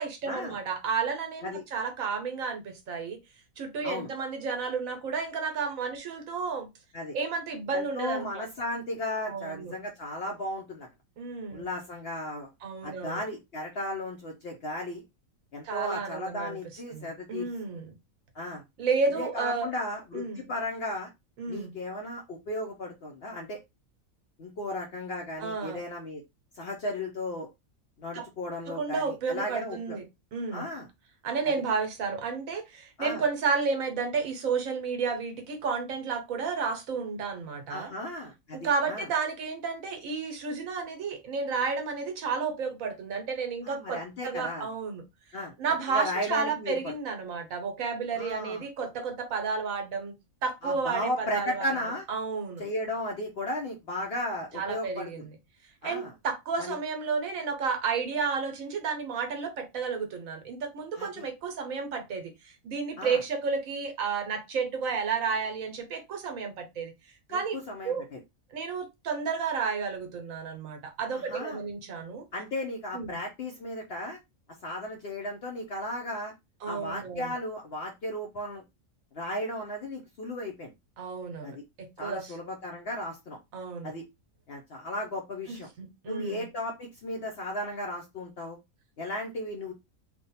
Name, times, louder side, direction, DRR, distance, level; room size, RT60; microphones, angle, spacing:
voice 1, 0.0-3.2 3.6-6.7 7.1-8.5 9.3-9.7 11.2-11.7 12.6-13.2 15.6-16.6 16.9-17.9 18.8-19.7 20.1-20.4 21.4-21.7 25.4-25.8 28.1-28.2 28.7-30.0 30.3-30.7 31.2-37.9 38.5-45.0 45.6-50.1 50.4-51.7 52.1-52.6 54.5-55.3 55.8-66.9 67.3-67.6 67.8-68.0 68.5-72.2 72.9-73.2 76.6-77.3 81.0-82.3 83.5-83.9 85.5-86.4, right 5 dB, 80° right, 1.3 m, -32 dB
voice 2, 7.7-10.9 11.5-12.5 12.8-15.0 15.5-17.5 18.3-18.6 19.1-21.1 21.5-23.6 24.4-26.2 26.6-27.5 28.0-30.0 30.5-30.9 33.0-33.2 37.7-39.1 43.6-44.7 45.3-45.5 45.9-46.8 48.1-48.6 50.6-52.0 52.6-55.3 55.8-56.1 56.6-56.8 60.9-61.2 63.0-63.2 67.3-68.2 71.1-71.6 72.3-74.2 74.6-76.3 76.7-78.6 79.1-80.7 81.4-81.6 82.0-83.4 83.8-84.0 84.5-85.7 86.1-88.6 89.0-89.7, left 1 dB, 55° left, 0.8 m, -35 dB
3.4 x 2.3 x 4.0 m
omnidirectional pair, 1.4 m